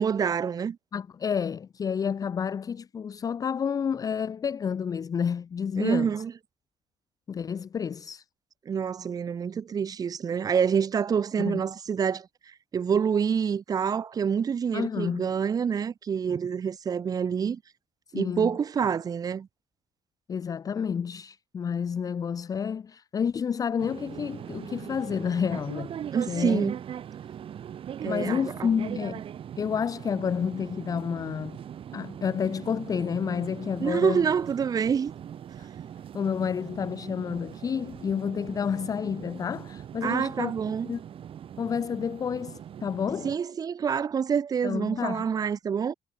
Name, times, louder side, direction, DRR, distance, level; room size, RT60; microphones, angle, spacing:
voice 1, 0.0-0.8 5.8-6.3 8.7-17.6 18.1-19.5 26.1-26.8 28.0-29.0 33.8-35.1 40.0-40.9 43.2-45.9, right 7 dB, 30° right, 0.8 m, -27 dB
voice 2, 0.9-6.2 7.3-8.2 11.4-11.6 14.7-15.3 18.1-18.5 20.3-25.9 26.3-26.7 28.1-29.2 29.6-31.6 31.9-34.3 35.6-35.7 36.1-40.5 40.8-41.0 41.6-43.3 44.6-45.2, left 7 dB, 30° left, 0.7 m, -30 dB
sound 1, 23.8-43.4, right 9 dB, 45° right, 5.8 m, -41 dB
cardioid pair, 140°, 12 cm